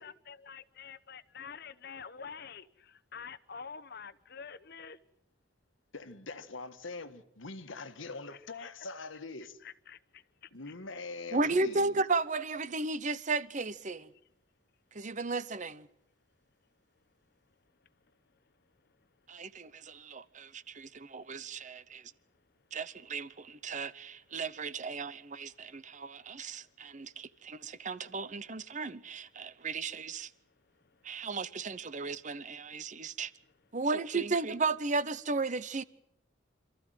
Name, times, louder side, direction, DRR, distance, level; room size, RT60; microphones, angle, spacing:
voice 1, 0.0-5.0 8.6-8.7 9.6-10.5, left 6 dB, 55° left, 0.9 m, -47 dB
voice 2, 5.9-9.6 10.5-12.0, left 3 dB, 85° left, 1.5 m, -43 dB
voice 3, 11.3-14.1 14.9-15.9 19.3-22.1 22.7-30.3 31.0-33.3 33.7-35.8, right 3 dB, 40° right, 0.8 m, -34 dB
27.0 x 14.0 x 9.2 m
head